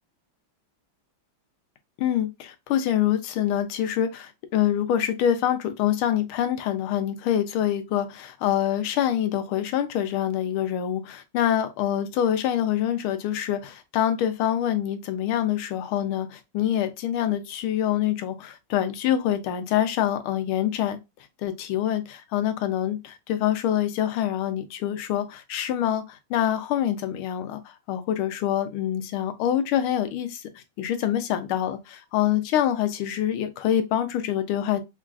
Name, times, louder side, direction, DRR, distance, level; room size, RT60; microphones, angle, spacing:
voice 1, 2.0-21.0 21.4-30.4 30.8-34.8, left 10 dB, 85° left, 1.5 m, -25 dB
5.3 x 2.4 x 2.3 m
omnidirectional pair, 2.3 m